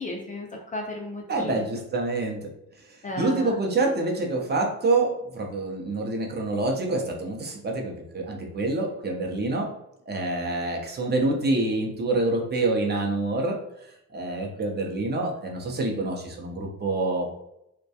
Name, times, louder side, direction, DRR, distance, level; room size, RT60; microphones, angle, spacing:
voice 1, 0.0-1.7 3.0-3.6, left 2 dB, 25° left, 0 dB, 0.4 m, -34 dB
voice 2, 1.3-2.5 3.2-9.7 10.1-13.6 14.1-17.3, right 2 dB, 30° right, 1 dB, 0.5 m, -26 dB
2.2 x 2.2 x 2.7 m, 0.80 s
cardioid pair, 100°, 32 cm